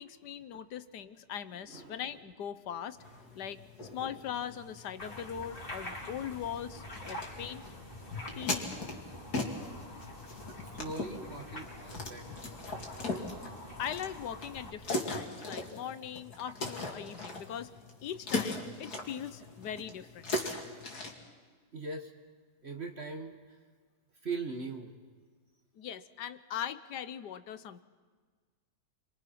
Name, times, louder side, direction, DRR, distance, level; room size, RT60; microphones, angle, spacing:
voice 1, 0.0-3.0 3.3-3.6 3.9-7.6 8.4-8.7 13.8-17.7 18.0-20.3 25.8-27.8, left 9 dB, 85° left, 13 dB, 1.5 m, -40 dB
voice 2, 1.7-2.0 10.6-12.4 21.7-22.1 22.6-23.4 24.2-25.0, right 3 dB, 40° right, 4 dB, 1.7 m, -40 dB
sound 1, 3.0-21.1, left 2 dB, 70° left, 3.2 m, -40 dB
sound 2, 5.0-14.7, left 1 dB, 30° left, 3.9 m, -46 dB
29.5 x 24.0 x 5.9 m, 1.5 s
omnidirectional pair, 1.7 m